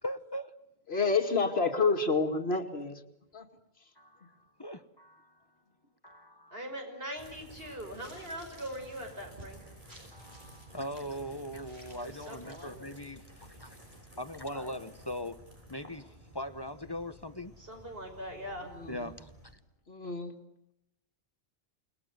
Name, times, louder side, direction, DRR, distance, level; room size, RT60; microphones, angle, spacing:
voice 1, 0.0-0.5 0.9-1.0 4.0-5.4 6.0-6.6 7.6-7.8 10.1-13.8 14.1-15.4 15.7-17.6 18.9-19.3, equal, 25° left, 11 dB, 1.1 m, -41 dB
voice 2, 0.9-3.0 3.3-3.5 18.8-19.1 19.9-20.3, left 4 dB, 75° left, 2 dB, 2.5 m, -29 dB
voice 3, 6.5-9.6 11.9-12.9 14.5-14.7 17.6-18.7, equal, 65° right, 4 dB, 6.0 m, -42 dB
sound 1, 7.2-19.5, right 1 dB, 35° right, 7.3 m, -53 dB
sound 2, 7.2-7.3 7.9-11.1 11.6-12.6, right 1 dB, 85° right, 7.9 m, -58 dB
29.5 x 20.5 x 9.6 m, 0.82 s
omnidirectional pair, 1.0 m